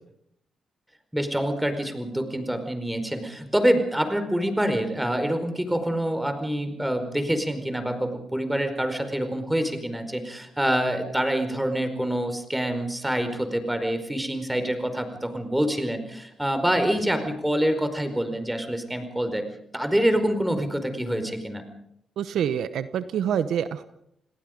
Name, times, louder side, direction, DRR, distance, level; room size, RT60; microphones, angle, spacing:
voice 1, 1.1-19.5 19.7-21.6, right 1 dB, 5° right, 8 dB, 4.8 m, -26 dB
voice 2, 22.2-23.8, right 8 dB, 80° right, 13 dB, 1.0 m, -26 dB
29.0 x 18.5 x 5.2 m, 0.75 s
supercardioid pair, 60°, 0 cm